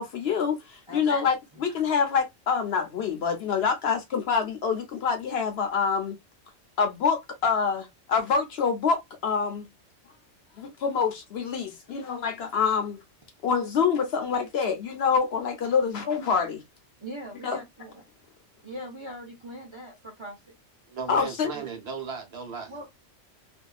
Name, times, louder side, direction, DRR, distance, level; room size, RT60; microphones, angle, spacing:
voice 1, 0.0-6.2 6.8-9.7 10.6-13.0 13.4-16.6 17.4-17.6 21.1-21.5, left 6 dB, 60° left, 0.8 m, -26 dB
voice 2, 17.0-18.0 18.6-20.6 21.5-21.7 22.7-22.9, equal, 30° right, 0.6 m, -41 dB
voice 3, 20.9-22.9, right 6 dB, 55° right, 1.0 m, -36 dB
2.6 x 2.3 x 2.3 m
omnidirectional pair, 1.3 m